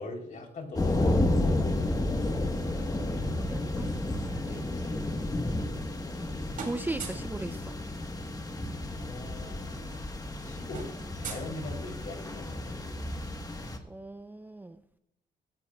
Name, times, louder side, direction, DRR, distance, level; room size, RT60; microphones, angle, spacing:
voice 1, 0.0-1.4 8.9-9.8 10.4-10.9 11.1-13.0, left 2 dB, 50° left, 3 dB, 3.4 m, -41 dB
sound 1, 0.7-13.8, left 1 dB, 20° left, 1.3 m, -31 dB
voice 2, 3.3-4.6 6.6-7.8 13.9-14.8, right 2 dB, 10° right, 10 dB, 0.5 m, -38 dB
sound 2, 5.5-6.3 6.5-7.4 8.7-8.8 9.1-9.3 9.6-12.2, right 5 dB, 55° right, 4.2 m, -43 dB
17.5 x 14.5 x 2.3 m, 0.81 s
cardioid pair, 105°, 17 cm